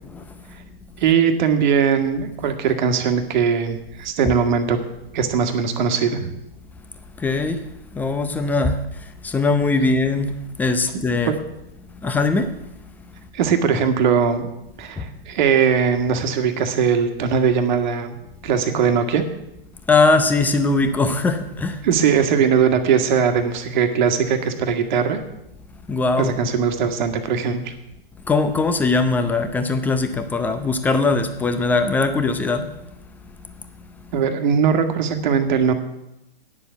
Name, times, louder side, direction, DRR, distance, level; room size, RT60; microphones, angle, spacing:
voice 1, 1.0-4.8 5.1-6.3 11.3-11.4 13.3-14.5 14.8-18.1 18.4-19.2 21.8-25.2 26.2-27.7 34.1-35.7, right 7 dB, 50° right, 7 dB, 1.6 m, -20 dB
voice 2, 7.2-7.6 7.9-8.8 9.2-11.3 12.0-12.5 15.0-15.1 19.9-21.8 25.9-26.3 28.3-32.7, left 3 dB, 5° left, 9 dB, 0.6 m, -20 dB
9.7 x 6.9 x 8.0 m, 0.88 s
hypercardioid pair, 130°, 31 cm